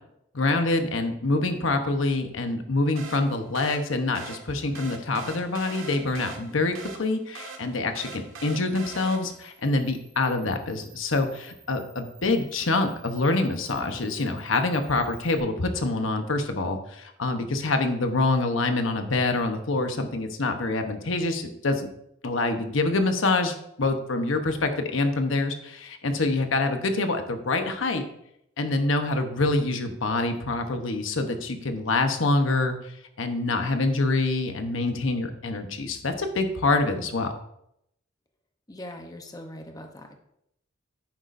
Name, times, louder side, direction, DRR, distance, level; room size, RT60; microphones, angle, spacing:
voice 1, 0.3-21.9 22.2-28.0 28.6-37.3, left 2 dB, 70° left, 6 dB, 1.0 m, -26 dB
sound 1, 3.0-9.6, right 4 dB, 85° right, 1.5 m, -42 dB
Camera, 8.4-15.4, right 7 dB, 40° right, 4.1 m, -53 dB
voice 2, 38.7-40.2, left 1 dB, 20° left, 3 dB, 0.8 m, -41 dB
10.5 x 9.4 x 2.6 m, 0.77 s
head